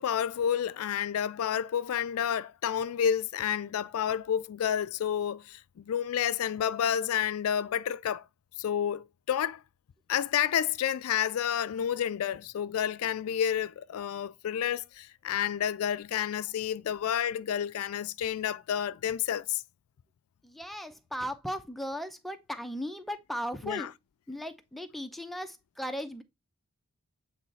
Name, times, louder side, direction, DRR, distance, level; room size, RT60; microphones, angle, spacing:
voice 1, 0.0-8.2 8.6-9.6 10.1-19.6 23.6-23.9, left 9 dB, 75° left, 0.3 m, -30 dB
voice 2, 20.4-23.9 24.3-26.2, equal, ahead, 0.7 m, -37 dB
8.0 x 3.1 x 4.0 m
head